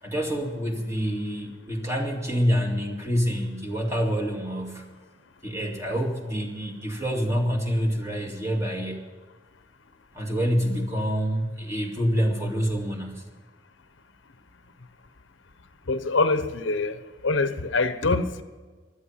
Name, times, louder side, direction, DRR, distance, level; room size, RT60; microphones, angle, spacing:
voice 1, 0.0-4.9 5.4-9.0 10.1-13.2, equal, 15° right, 2.3 m, -27 dB
voice 2, 15.9-17.0 17.2-18.4, left 3 dB, 85° left, 1.0 m, -24 dB
16.0 x 12.0 x 5.8 m
head